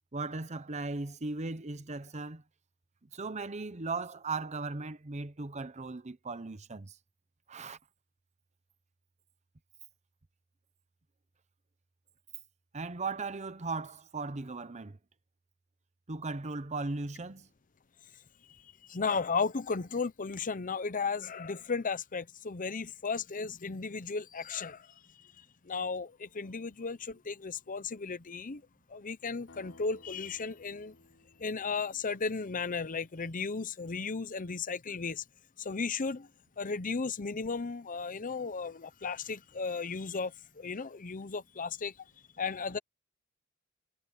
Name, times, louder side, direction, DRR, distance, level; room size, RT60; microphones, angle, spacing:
voice 1, 0.1-2.4 3.1-7.0 7.5-7.8 12.7-15.0 16.1-17.5, right 3 dB, 30° right, 0.9 m, -37 dB
voice 2, 18.9-24.9 25.6-28.6 28.9-30.9 31.4-35.2 35.6-36.3 36.6-41.9 42.4-42.8, left 4 dB, 35° left, 0.8 m, -35 dB
sound 1, 29.5-33.3, left 2 dB, 55° left, 4.9 m, -59 dB
head